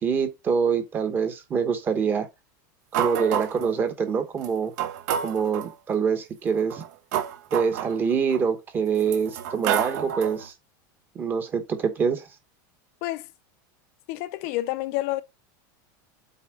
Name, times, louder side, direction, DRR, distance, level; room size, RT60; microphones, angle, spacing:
voice 1, 0.0-2.3 3.0-4.7 5.2-6.8 7.5-10.5 11.1-12.3, right 6 dB, 20° right, 1.1 m, -25 dB
sound 1, 2.9-3.7 4.4-4.5 4.8-5.7 6.5-8.4 9.0-10.5, right 9 dB, 60° right, 1.0 m, -29 dB
voice 2, 14.1-15.2, left 17 dB, 50° left, 0.6 m, -29 dB
8.1 x 3.4 x 4.9 m
supercardioid pair, 175°, 10 cm